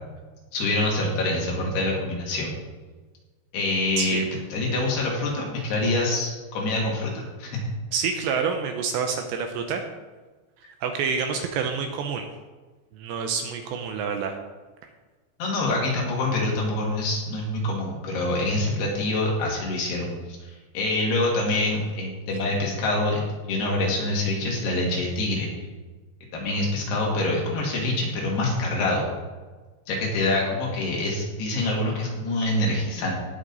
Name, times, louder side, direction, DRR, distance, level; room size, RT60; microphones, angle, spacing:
voice 1, 0.5-2.5 3.5-4.3 4.5-7.6 15.4-23.2 23.5-25.5 26.3-29.1 29.9-33.1, left 2 dB, 65° left, -2 dB, 3.9 m, -25 dB
voice 2, 7.9-9.8 10.8-12.3 12.9-14.4, right 6 dB, 75° right, 5 dB, 2.8 m, -27 dB
18.0 x 6.3 x 4.0 m, 1.3 s
omnidirectional pair, 5.5 m